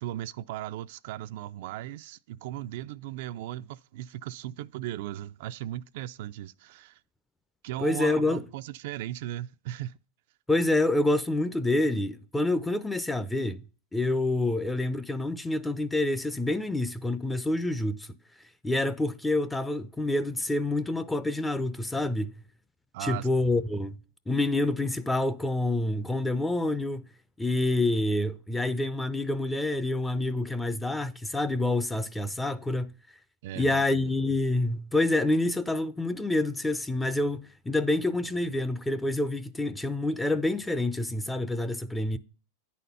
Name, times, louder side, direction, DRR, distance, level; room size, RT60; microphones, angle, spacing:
voice 1, 0.0-7.0 7.6-10.0 22.9-23.3 33.4-34.0, right 13 dB, 65° right, 0.3 m, -37 dB
voice 2, 7.8-8.4 10.5-13.6 13.9-18.1 18.6-22.3 23.0-24.0 24.3-27.1 27.4-32.9 33.6-42.2, left 2 dB, 5° left, 0.5 m, -27 dB
9.9 x 4.2 x 5.4 m
supercardioid pair, 130°, 0 cm